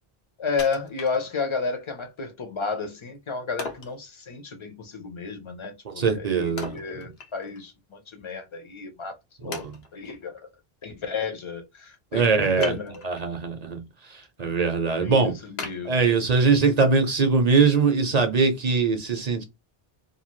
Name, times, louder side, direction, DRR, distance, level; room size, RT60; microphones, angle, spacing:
voice 1, 0.4-10.4 10.8-12.9 14.9-16.0, left 4 dB, 35° left, 0.6 m, -32 dB
Wood, 0.6-1.7 2.2-2.3 3.6-4.0 6.6-7.7 8.0-8.1 8.8-8.9 9.5-10.2 12.6-13.3 13.8-14.3 14.7-14.8 15.6-16.6 17.1-17.2, left 4 dB, 85° left, 1.0 m, -39 dB
voice 2, 5.8-7.1 9.4-9.8 12.1-12.7 13.0-15.3 15.8-19.4, right 4 dB, 45° right, 0.7 m, -22 dB
2.7 x 2.4 x 3.0 m
omnidirectional pair, 1.0 m